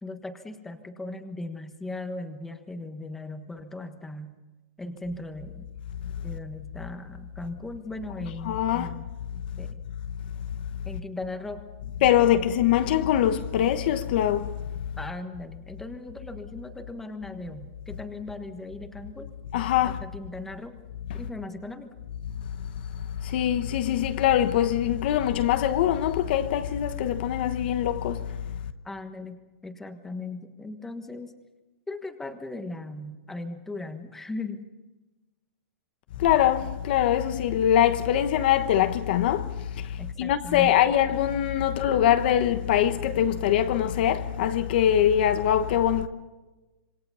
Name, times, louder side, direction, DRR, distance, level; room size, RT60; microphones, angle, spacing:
voice 1, 0.0-4.3 4.8-5.7 6.2-9.1 9.6-9.9 10.8-11.6 12.3-12.5 15.0-19.3 19.8-20.8 21.1-21.9 28.8-29.4 29.6-31.3 31.9-34.6 40.0-40.8, left 2 dB, 5° left, 1.3 m, -38 dB
voice 2, 8.5-8.9 12.0-14.7 19.5-20.0 22.4-22.5 22.9-28.4 36.2-46.1, left 10 dB, 45° left, 1.0 m, -23 dB
26.5 x 25.0 x 5.6 m
hypercardioid pair, 170°, 8 cm